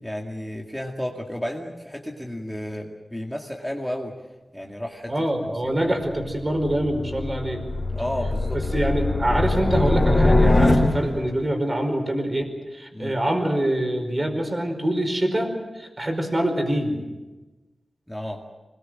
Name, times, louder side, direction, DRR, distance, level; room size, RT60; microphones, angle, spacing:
voice 1, 0.0-4.1 4.5-5.1 5.6-6.0 7.9-8.6 12.9-13.2 18.1-18.4, equal, 5° left, 0 dB, 2.1 m, -32 dB
voice 2, 5.1-7.6 8.7-17.0, right 1 dB, 30° right, 5 dB, 5.0 m, -25 dB
sound 1, 6.1-11.3, left 2 dB, 20° left, 4.3 m, -22 dB
26.0 x 21.0 x 7.7 m, 1.1 s
wide cardioid pair, 105°, 0 cm